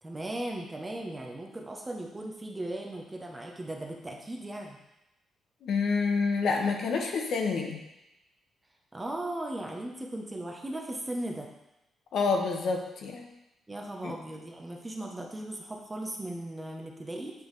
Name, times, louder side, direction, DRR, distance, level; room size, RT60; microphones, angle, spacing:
voice 1, 0.0-4.8 8.9-11.5 13.7-17.3, right 1 dB, 15° right, 1 dB, 0.7 m, -37 dB
voice 2, 5.6-7.8 12.1-13.3 14.0-14.1, left 4 dB, 65° left, 2 dB, 0.8 m, -28 dB
8.6 x 3.5 x 3.2 m, 0.91 s
cardioid pair, 140°, 0 cm